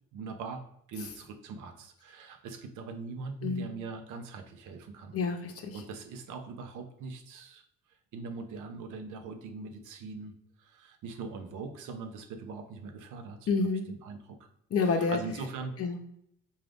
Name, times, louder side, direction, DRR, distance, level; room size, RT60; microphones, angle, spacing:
voice 1, 0.1-0.6 0.9-5.2 5.7-7.6 8.1-10.3 10.6-13.4 13.9-14.4 14.9-15.7, right 4 dB, 85° right, 6 dB, 0.6 m, -41 dB
voice 2, 5.1-5.8 13.5-13.9 14.7-15.2 15.8-16.0, left 4 dB, 50° left, 5 dB, 0.7 m, -29 dB
3.8 x 2.4 x 3.3 m, 0.72 s
cardioid pair, 90°, 30 cm